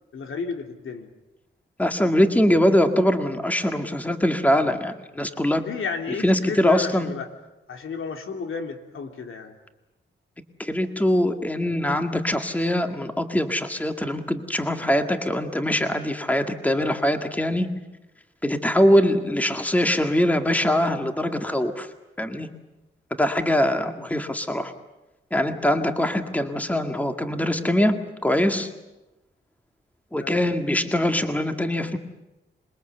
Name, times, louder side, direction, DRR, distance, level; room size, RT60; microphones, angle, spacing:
voice 1, 0.1-1.1 5.6-7.3 7.7-9.6 24.0-24.1 30.2-30.4, left 5 dB, 80° left, 5 dB, 3.0 m, -32 dB
voice 2, 1.8-5.6 6.2-7.1 10.6-17.7 18.4-21.9 22.2-22.5 23.2-24.7 25.3-28.7 30.1-32.0, left 1 dB, 5° left, 6 dB, 1.9 m, -22 dB
27.0 x 22.0 x 8.0 m, 0.98 s
wide cardioid pair, 105°, 21 cm